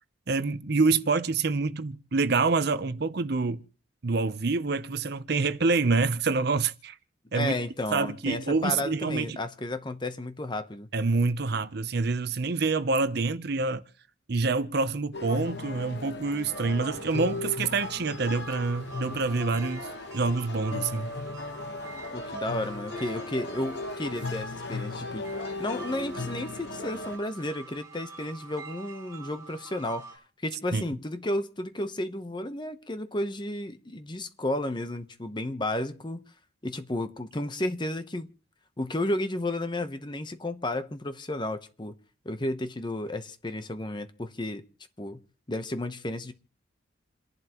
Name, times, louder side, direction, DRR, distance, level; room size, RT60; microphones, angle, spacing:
voice 1, 0.3-3.6 4.0-7.0 7.3-7.6 7.9-9.4 10.9-13.8 14.3-19.9 20.1-21.1 30.7-30.8, right 3 dB, 55° right, 0.7 m, -26 dB
voice 2, 7.3-10.9 22.1-36.2 36.6-38.3 38.8-42.0 42.2-44.6 45.0-45.2 45.5-46.3, left 1 dB, 25° left, 0.9 m, -32 dB
sound 1, 15.1-27.2, left 3 dB, 55° left, 1.1 m, -37 dB
sound 2, 16.5-30.2, right 5 dB, 15° right, 5.9 m, -46 dB
28.5 x 11.0 x 3.0 m
head